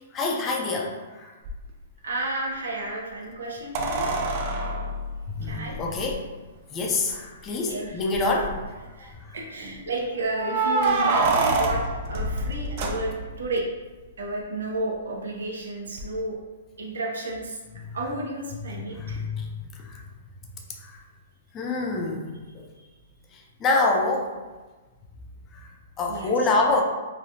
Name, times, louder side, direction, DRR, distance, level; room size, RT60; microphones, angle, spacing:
voice 1, 0.1-1.3 5.3-6.2 6.7-8.6 9.0-9.4 17.9-18.0 18.9-20.0 20.8-21.0 21.5-22.7 23.3-24.3 25.5-25.7 26.0-26.8, left 3 dB, 20° left, 0 dB, 0.4 m, -27 dB
sound 1, 1.4-1.5 3.7-6.1 7.1-7.2 7.5-7.6 8.1-8.6 10.3-13.5 16.0-16.1, right 3 dB, 40° right, 0.4 m, -26 dB
voice 2, 2.0-4.1 5.4-5.8 7.6-7.8 8.3-8.5 9.0-11.8 12.1-13.6 14.2-16.4 16.8-17.6 17.9-19.2 26.1-26.3, right 2 dB, 85° right, -1 dB, 0.7 m, -32 dB
3.1 x 2.3 x 2.6 m, 1.2 s
hypercardioid pair, 145°, 0 cm